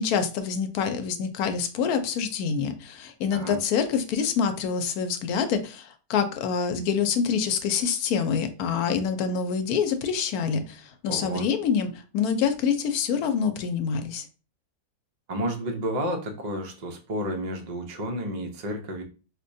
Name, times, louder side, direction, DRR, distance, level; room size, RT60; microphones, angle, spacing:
voice 1, 0.0-11.9 12.1-14.2, left 6 dB, 75° left, 1.0 m, -26 dB
voice 2, 11.1-11.5 15.3-19.0, right 1 dB, 75° right, 0.4 m, -31 dB
4.8 x 2.2 x 2.6 m
omnidirectional pair, 1.7 m